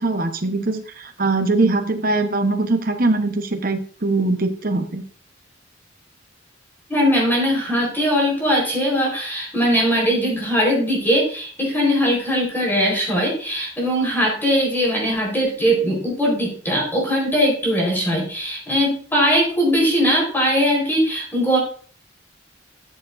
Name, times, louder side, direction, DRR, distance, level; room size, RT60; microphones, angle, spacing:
voice 1, 0.0-5.0, right 2 dB, 45° right, 6 dB, 1.1 m, -21 dB
voice 2, 6.9-21.6, equal, 10° left, -2 dB, 4.4 m, -20 dB
14.0 x 7.0 x 2.7 m, 0.43 s
head